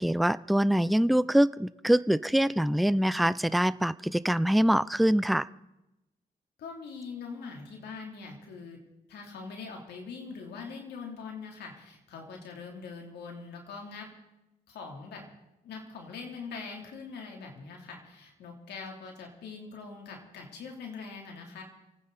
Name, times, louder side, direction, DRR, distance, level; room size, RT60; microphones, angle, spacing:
voice 1, 0.0-5.5, equal, ahead, 17 dB, 0.5 m, -24 dB
voice 2, 6.6-8.8 9.1-14.1 14.7-15.2 15.6-21.6, left 5 dB, 90° left, 1 dB, 3.1 m, -42 dB
29.0 x 9.7 x 4.1 m, 0.94 s
cardioid pair, 55°, 17 cm